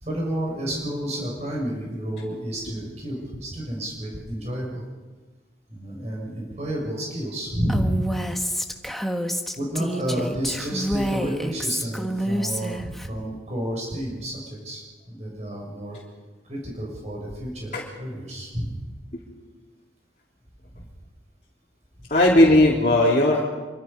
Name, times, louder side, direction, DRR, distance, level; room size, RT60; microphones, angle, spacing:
voice 1, 0.0-4.8 5.7-8.0 9.6-16.0 16.5-18.7, right 1 dB, 35° right, -2 dB, 6.3 m, -30 dB
Female speech woman speaking, 7.7-13.1, equal, ahead, 1.4 m, -28 dB
voice 2, 22.1-23.4, left 1 dB, 40° left, -4 dB, 3.5 m, -17 dB
27.0 x 25.0 x 5.5 m, 1.3 s
head